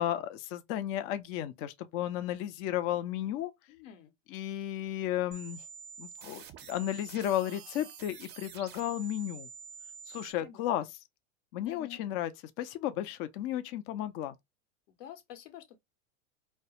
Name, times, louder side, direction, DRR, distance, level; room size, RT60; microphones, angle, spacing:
voice 1, 0.0-3.5 4.3-5.6 6.0-9.5 10.1-10.8 11.5-12.3 12.6-14.3, left 12 dB, 35° left, 0.4 m, -33 dB
voice 2, 3.7-4.1 10.4-10.6 11.6-12.0 15.0-15.8, left 10 dB, 65° left, 0.9 m, -48 dB
sound 1, 5.3-10.3, right 7 dB, 25° right, 0.5 m, -48 dB
2.3 x 2.1 x 2.8 m
hypercardioid pair, 105°, 40 cm